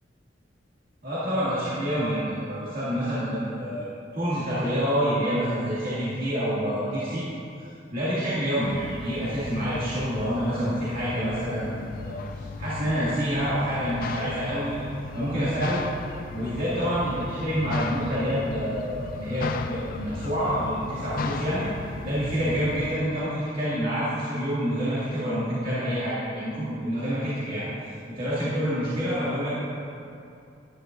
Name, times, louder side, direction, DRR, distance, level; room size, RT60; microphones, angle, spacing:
voice 1, 1.0-3.9 4.1-7.2 7.6-14.8 15.1-15.8 16.3-21.7 22.0-27.7 28.1-29.6, equal, 50° right, -12 dB, 2.3 m, -27 dB
sound 1, 8.6-23.0, left 4 dB, 50° left, 0.4 m, -36 dB
11.5 x 10.0 x 2.6 m, 2.5 s
head